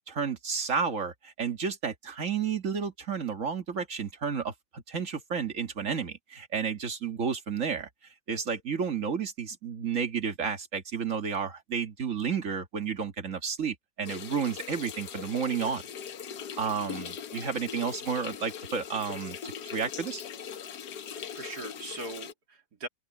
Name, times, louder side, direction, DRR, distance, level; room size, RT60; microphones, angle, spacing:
voice 1, 0.0-7.9 8.3-15.8 16.6-20.2, right 6 dB, 50° right, 1.9 m, -31 dB
sound 1, 14.0-22.3, left 8 dB, 70° left, 1.6 m, -40 dB
voice 2, 21.1-22.9, right 2 dB, 65° right, 3.2 m, -41 dB
open air
omnidirectional pair, 1.8 m